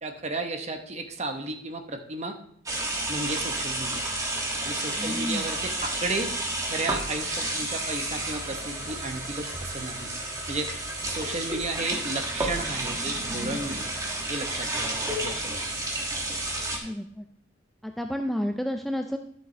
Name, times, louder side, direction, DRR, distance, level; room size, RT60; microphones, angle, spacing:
voice 1, 0.0-2.3 3.1-4.0 4.6-6.3 6.7-10.1 10.5-10.7 11.0-13.9 14.3-15.9, right 2 dB, 35° right, 5 dB, 0.9 m, -33 dB
sound 1, 2.7-16.8, right 2 dB, 20° right, 1.3 m, -31 dB
voice 2, 5.0-5.4 16.8-17.3 17.8-19.2, equal, ahead, 5 dB, 0.3 m, -30 dB
11.0 x 6.7 x 3.2 m, 0.66 s
head